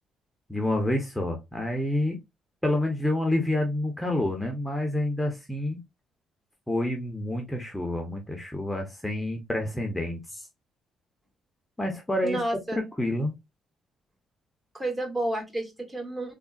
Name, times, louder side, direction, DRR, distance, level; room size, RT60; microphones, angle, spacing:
voice 1, 0.5-2.2 2.6-5.8 6.7-10.5 11.8-12.4 12.7-13.3, left 1 dB, 10° left, 0.7 m, -28 dB
voice 2, 12.2-12.8 14.7-16.3, right 1 dB, 20° right, 1.1 m, -30 dB
3.6 x 2.0 x 2.3 m
cardioid pair, 90°, 0 cm